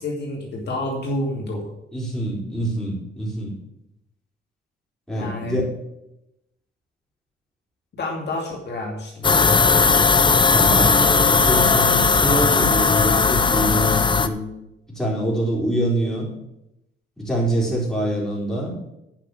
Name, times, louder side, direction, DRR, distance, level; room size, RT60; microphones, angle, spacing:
voice 1, 0.0-1.7 5.1-5.6 7.9-9.6, left 1 dB, 55° left, -2 dB, 2.6 m, -29 dB
voice 2, 1.9-3.5 5.1-5.7 10.5-14.4 14.9-16.3 17.2-18.7, right 1 dB, 5° left, -4 dB, 4.3 m, -25 dB
sound 1, 9.2-14.3, left 4 dB, 25° left, 0.7 m, -17 dB
8.7 x 5.9 x 7.8 m, 0.86 s
cardioid pair, 100°, 21 cm